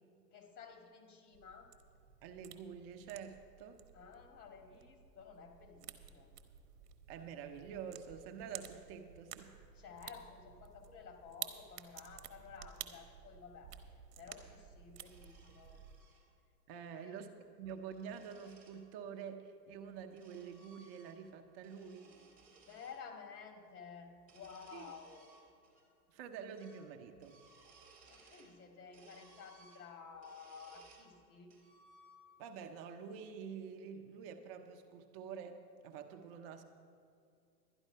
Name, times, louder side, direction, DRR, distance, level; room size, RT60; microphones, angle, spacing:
voice 1, 0.3-1.7 3.9-6.3 9.7-13.7 14.2-15.8 16.7-17.1 22.6-25.3 28.1-31.6, left 6 dB, 60° left, 3 dB, 2.1 m, -53 dB
sound 1, 1.3-16.0, right 10 dB, 65° right, 1.1 m, -53 dB
voice 2, 2.2-3.8 7.1-9.5 16.7-17.3 17.6-22.1 24.7-24.8 26.1-27.4 28.2-28.5 32.4-36.6, right 7 dB, 35° right, 6 dB, 0.8 m, -48 dB
sound 2, 14.9-16.2 17.5-18.8 19.7-21.3 21.6-23.0 24.2-25.8 26.1-26.2 26.5-26.9 27.1-28.6 28.9-31.1 31.5-32.4, right 2 dB, 15° right, 2.6 m, -63 dB
12.0 x 10.5 x 5.6 m, 2.4 s
hypercardioid pair, 135°, 49 cm